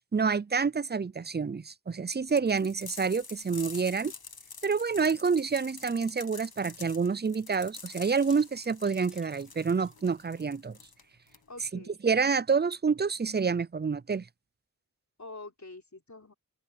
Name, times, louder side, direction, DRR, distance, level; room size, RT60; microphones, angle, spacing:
voice 1, 0.1-4.1 4.6-10.8 12.0-14.3, right 5 dB, 30° right, 0.4 m, -28 dB
sound 1, 2.3-11.7, left 4 dB, 85° left, 1.5 m, -47 dB
sound 2, 6.8-8.6 8.9-10.1 12.2-12.3 12.6-12.7 13.0-13.1 13.4-13.5, equal, ahead, 3.6 m, -63 dB
voice 2, 11.5-12.0 15.2-16.3, left 2 dB, 50° left, 3.9 m, -46 dB
wide cardioid pair, 55°, 36 cm